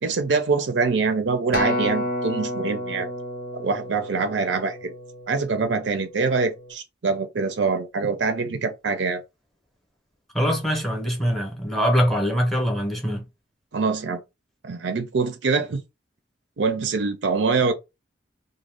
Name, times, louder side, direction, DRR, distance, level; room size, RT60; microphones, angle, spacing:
voice 1, 0.0-3.1 3.5-4.9 5.3-9.2 13.7-14.2 14.6-15.8 16.6-17.7, right 4 dB, 70° right, 0.5 m, -24 dB
Acoustic guitar, 1.5-5.9 6.6-6.7, left 1 dB, 50° left, 0.5 m, -30 dB
voice 2, 10.3-13.2, equal, ahead, 0.7 m, -23 dB
2.5 x 2.2 x 3.3 m
head